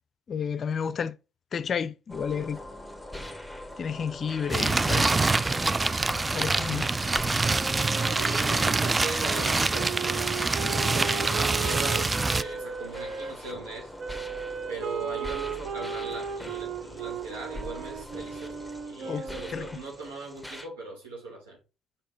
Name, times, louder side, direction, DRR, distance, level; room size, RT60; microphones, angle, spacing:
voice 1, 0.3-1.2 1.5-2.6 3.8-5.1 6.3-6.9 19.0-19.8, left 7 dB, 45° left, 0.4 m, -31 dB
sound 1, 2.1-20.7, left 1 dB, 5° right, 1.3 m, -42 dB
sound 2, 4.5-12.4, right 3 dB, 20° right, 0.3 m, -25 dB
Wind instrument woodwind instrument, 7.4-13.3 14.0-19.8, right 7 dB, 60° right, 0.7 m, -36 dB
voice 2, 7.9-13.9 14.7-21.6, right 3 dB, 85° right, 2.5 m, -39 dB
5.1 x 4.7 x 3.9 m
hypercardioid pair, 55°, 0 cm